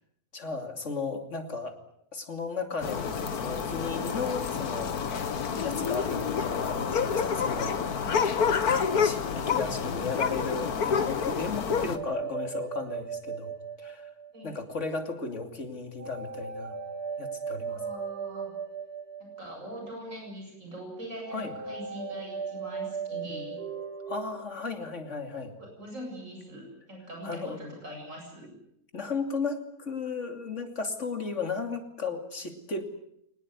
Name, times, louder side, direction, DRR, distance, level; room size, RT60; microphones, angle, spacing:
voice 1, 0.3-1.8 2.1-5.0 5.6-8.2 8.7-14.1 14.4-16.8 17.2-17.8 21.3-21.5 24.1-25.5 27.2-27.6 28.9-32.8, left 4 dB, 50° left, 6 dB, 3.1 m, -35 dB
sound 1, 2.8-12.0, left 6 dB, 80° left, 1.9 m, -28 dB
sound 2, 11.9-14.6 16.0-19.9 21.3-24.3, right 6 dB, 90° right, 3.5 m, -37 dB
voice 2, 17.7-18.5 19.2-23.6 25.6-28.5, equal, 55° right, 1 dB, 8.2 m, -42 dB
23.5 x 19.5 x 9.6 m, 0.74 s
omnidirectional pair, 1.6 m